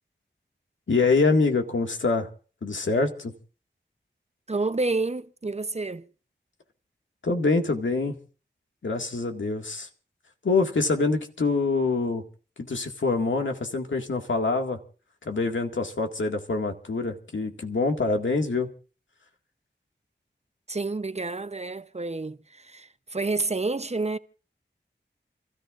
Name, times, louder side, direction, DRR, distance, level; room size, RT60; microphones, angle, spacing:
voice 1, 0.9-2.3 2.6-3.3 7.2-8.2 8.8-9.9 10.4-12.2 12.6-14.8 15.3-18.7, left 3 dB, 85° left, 2.0 m, -25 dB
voice 2, 4.5-6.1 20.7-24.2, right 3 dB, 35° right, 0.8 m, -29 dB
30.0 x 13.5 x 2.5 m
wide cardioid pair, 50°, 19 cm